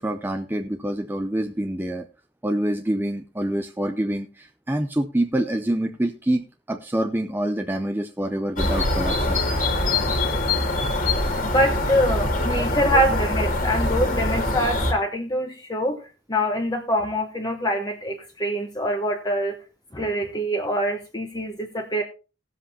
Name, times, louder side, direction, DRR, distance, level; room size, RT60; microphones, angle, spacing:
voice 1, 0.0-2.1 2.4-9.4, right 1 dB, 10° right, 5 dB, 0.5 m, -26 dB
sound 1, 8.6-14.9, left 2 dB, 40° left, 2.2 m, -23 dB
voice 2, 11.4-16.0 16.3-19.6 19.9-22.0, equal, 20° left, 2 dB, 1.0 m, -24 dB
18.0 x 7.6 x 2.8 m, 0.31 s
head